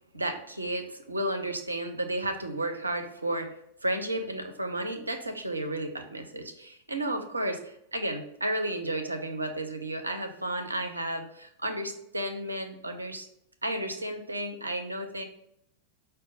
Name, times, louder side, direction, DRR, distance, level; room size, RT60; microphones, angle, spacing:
voice 1, 0.1-13.3 13.6-15.2, right 1 dB, 80° right, 6 dB, 0.5 m, -33 dB
5.0 x 2.2 x 4.0 m, 0.75 s
figure-of-eight pair, 90°, 0 cm